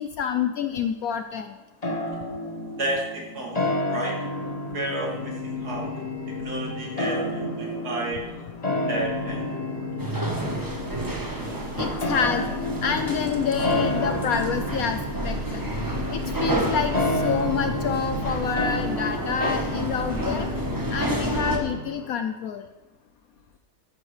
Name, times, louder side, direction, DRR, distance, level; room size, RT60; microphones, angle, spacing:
voice 1, 0.0-1.6 11.8-12.4 12.8-15.0 15.2-15.6 16.1-20.5 20.9-22.6, left 7 dB, 70° left, 7 dB, 0.9 m, -27 dB
sound 1, 1.8-20.3, left 1 dB, 25° left, 1.2 m, -31 dB
voice 2, 2.8-4.2 4.7-5.9 6.3-8.4 8.9-9.9 11.4-11.9, right 1 dB, 60° right, -3 dB, 2.9 m, -32 dB
sound 2, 4.2-22.1, left 5 dB, 45° left, 1.0 m, -36 dB
sound 3, 10.0-21.6, right 1 dB, 15° right, 1.1 m, -30 dB
13.0 x 11.5 x 3.3 m, 1.1 s
omnidirectional pair, 1.9 m